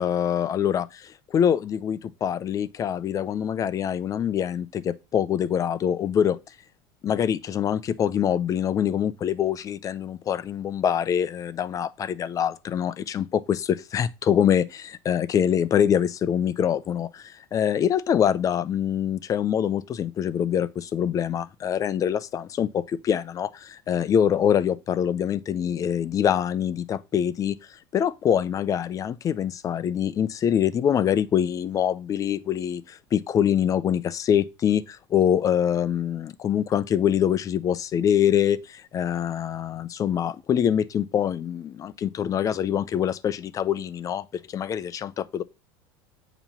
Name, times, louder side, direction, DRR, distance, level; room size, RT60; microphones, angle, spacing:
voice 1, 0.0-6.4 7.0-27.6 27.9-45.4, left 9 dB, 30° left, 0.5 m, -24 dB
8.7 x 3.0 x 5.6 m
supercardioid pair, 130°, 12 cm